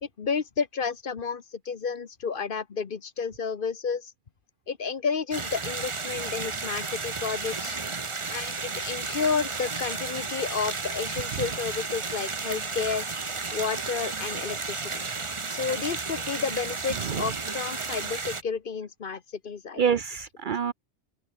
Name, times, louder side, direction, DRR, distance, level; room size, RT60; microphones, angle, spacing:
voice 1, 0.0-4.1 4.7-7.8 8.3-13.1 13.5-14.9 15.5-19.8, left 5 dB, 50° left, 1.1 m, -31 dB
sound 1, 5.3-18.4, right 4 dB, 30° right, 1.0 m, -33 dB
voice 2, 16.9-17.3 19.8-20.7, right 7 dB, 55° right, 0.7 m, -27 dB
open air
omnidirectional pair, 1.2 m